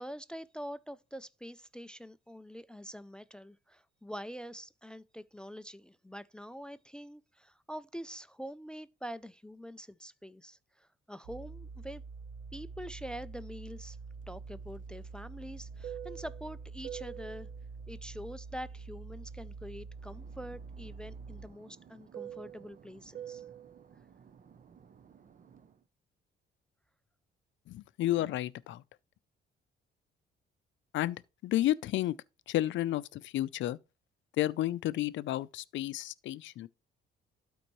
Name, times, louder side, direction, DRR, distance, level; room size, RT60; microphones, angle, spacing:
voice 1, 0.0-12.0 12.5-14.0 14.3-17.5 17.9-23.4, equal, 5° left, 0.3 m, -45 dB
sound 1, 11.2-21.5, right 4 dB, 90° right, 1.2 m, -46 dB
Fixed-wing aircraft airplane, 14.2-19.6 19.9-25.8, right 10 dB, 45° right, 0.6 m, -49 dB
voice 2, 27.7-28.8 30.9-32.2 32.5-33.8 34.4-36.7, left 14 dB, 70° left, 0.5 m, -31 dB
12.0 x 4.5 x 3.1 m
cardioid pair, 90°, 20 cm